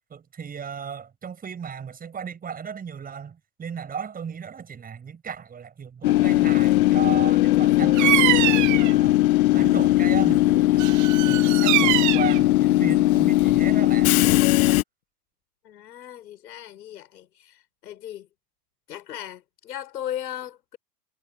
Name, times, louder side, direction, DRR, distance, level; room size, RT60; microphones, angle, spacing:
voice 1, 0.1-9.3 9.5-14.2, right 7 dB, 15° right, 7.3 m, -35 dB
Train / Subway metro underground, 6.0-14.8, left 17 dB, 60° left, 0.9 m, -19 dB
Bird vocalization bird call bird song, 7.9-8.9 10.8-12.4, right 18 dB, 35° right, 2.0 m, -23 dB
voice 2, 15.6-17.6 17.8-18.3 18.9-20.8, left 11 dB, 80° left, 5.2 m, -37 dB
hypercardioid pair, 130°, 49 cm